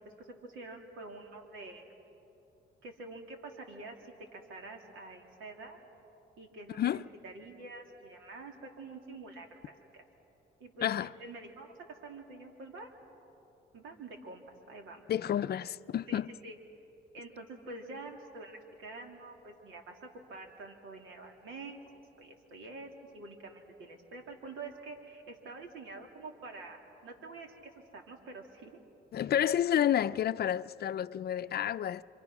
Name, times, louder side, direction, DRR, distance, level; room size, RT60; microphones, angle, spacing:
voice 1, 0.2-1.9 2.8-5.8 6.4-6.9 7.2-10.0 10.6-12.9 13.7-14.4 14.7-15.0 16.1-16.6 17.1-21.8 22.2-28.8, right 3 dB, 85° right, 2.9 m, -47 dB
voice 2, 10.8-11.1 15.1-16.3 29.1-32.0, left 10 dB, 55° left, 0.5 m, -30 dB
27.5 x 26.0 x 6.1 m
cardioid pair, 90°, 20 cm